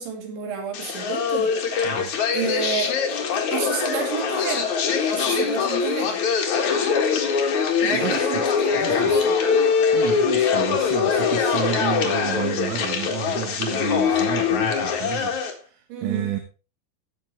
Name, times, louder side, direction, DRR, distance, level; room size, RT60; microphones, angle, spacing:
voice 1, 0.0-1.5 2.3-3.2 3.5-4.7 5.1-6.2 7.8-9.3 15.9-16.4, right 6 dB, 65° right, 2 dB, 4.6 m, -30 dB
sound 1, 0.7-15.5, left 6 dB, 60° left, 2.1 m, -22 dB
voice 2, 7.9-8.5 8.7-9.2 9.9-16.4, right 11 dB, 90° right, 4 dB, 3.9 m, -31 dB
17.0 x 6.2 x 3.2 m, 0.32 s
omnidirectional pair, 5.8 m